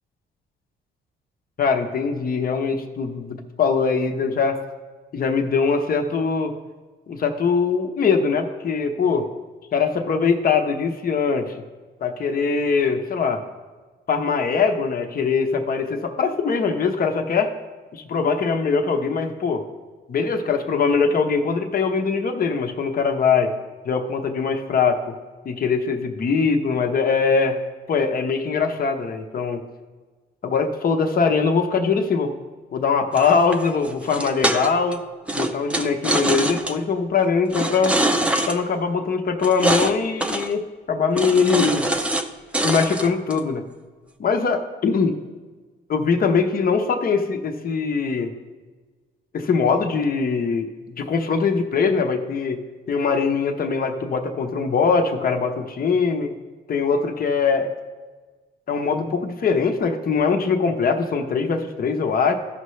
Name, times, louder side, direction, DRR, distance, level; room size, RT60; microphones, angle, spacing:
voice 1, 1.6-4.6 5.1-6.5 7.1-9.3 9.7-11.6 12.0-13.4 14.1-17.5 17.9-19.6 20.1-23.5 23.8-25.1 25.4-27.6 27.9-29.6 30.4-32.3 32.7-35.0 35.3-38.0 38.5-41.9 42.6-43.6 44.2-45.2 45.9-48.3 49.3-50.7 51.0-56.3 56.7-57.7 58.7-62.3, left 5 dB, 45° left, 6 dB, 0.9 m, -22 dB
sound 1, 33.2-34.9 35.3-36.8 37.5-38.6 39.4-39.9 40.2-40.5 41.2-42.3 42.5-43.4, right 1 dB, 5° right, 0.6 m, -23 dB
14.0 x 5.6 x 3.2 m, 1.4 s
cardioid pair, 90°, 20 cm